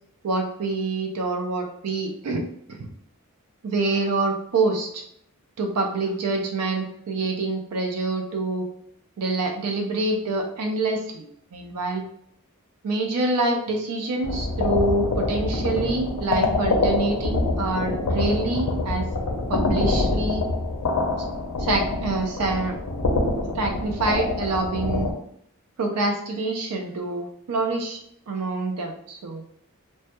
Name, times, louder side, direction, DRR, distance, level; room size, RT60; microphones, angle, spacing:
voice 1, 0.2-2.4 2.7-2.9 3.6-5.0 5.6-8.7 9.2-12.0 12.8-19.1 19.5-20.4 21.6-22.8 23.5-25.1 25.8-28.0 28.3-29.4, right 2 dB, 85° right, 3 dB, 0.4 m, -26 dB
sound 1, 14.2-25.1, left 2 dB, 70° left, 0.4 m, -25 dB
2.1 x 2.1 x 2.8 m, 0.69 s
head